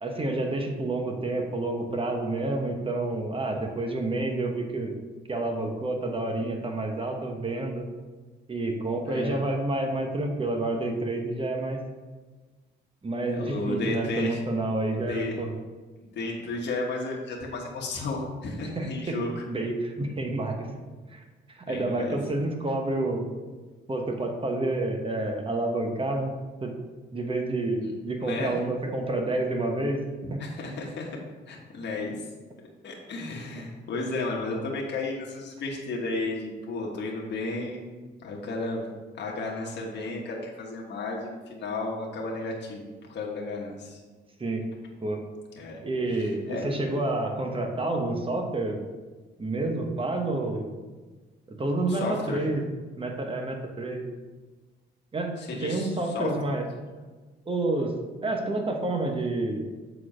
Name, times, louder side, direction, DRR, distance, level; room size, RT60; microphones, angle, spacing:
voice 1, 0.0-4.9 5.3-7.9 8.5-11.8 13.0-15.5 18.7-19.2 19.5-20.7 21.1-21.2 21.5-23.3 23.9-26.3 26.6-26.7 27.1-30.0 30.3-30.4 44.4-44.6 45.0-45.2 45.8-48.8 49.4-50.7 51.5-52.6 53.0-54.0 55.1-55.3 55.6-56.6 57.5-57.9 58.2-59.6, right 2 dB, 25° right, 3 dB, 1.2 m, -29 dB
voice 2, 13.3-14.4 14.9-15.4 16.0-19.3 21.7-22.2 27.8-27.9 28.2-28.5 30.4-31.1 31.5-32.2 32.8-37.8 38.2-44.0 45.6-45.8 46.1-46.7 51.9-52.5 55.4-56.3, left 2 dB, 60° left, -2 dB, 1.4 m, -33 dB
7.3 x 4.3 x 5.0 m, 1.3 s
cardioid pair, 90°, 20 cm